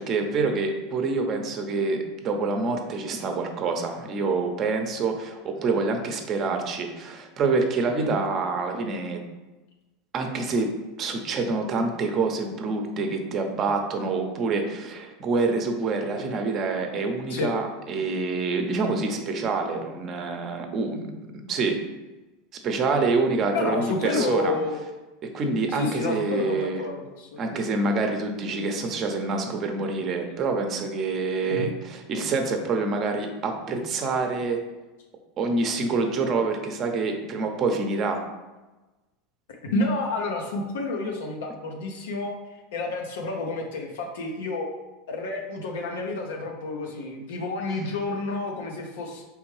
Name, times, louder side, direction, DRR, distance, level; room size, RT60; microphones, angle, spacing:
voice 1, 0.0-9.2 10.1-10.7 11.0-21.1 21.5-21.8 22.6-24.5 25.2-26.8 27.4-34.6 35.4-38.2, right 3 dB, 40° right, 4 dB, 0.7 m, -26 dB
voice 2, 23.5-24.8 25.7-27.7 31.5-31.7 39.5-42.3 42.7-44.7 45.1-49.2, left 3 dB, 85° left, 1 dB, 0.6 m, -30 dB
4.3 x 3.3 x 3.2 m, 1.1 s
supercardioid pair, 115°, 0 cm